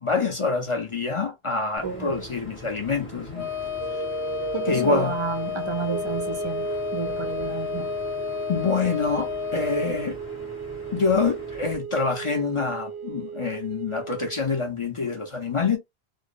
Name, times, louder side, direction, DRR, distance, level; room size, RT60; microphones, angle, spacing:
voice 1, 0.0-3.5 4.7-5.2 8.5-10.2 10.9-15.8, left 4 dB, 35° left, 0.6 m, -26 dB
sound 1, 1.8-11.8, right 1 dB, 10° left, 0.9 m, -43 dB
voice 2, 1.8-2.1 4.5-7.9, right 6 dB, 40° right, 0.4 m, -31 dB
Wind instrument woodwind instrument, 3.3-10.1, left 10 dB, 90° left, 1.0 m, -32 dB
sound 2, 3.8-14.4, right 7 dB, 85° right, 0.9 m, -36 dB
2.6 x 2.0 x 2.4 m
omnidirectional pair, 1.1 m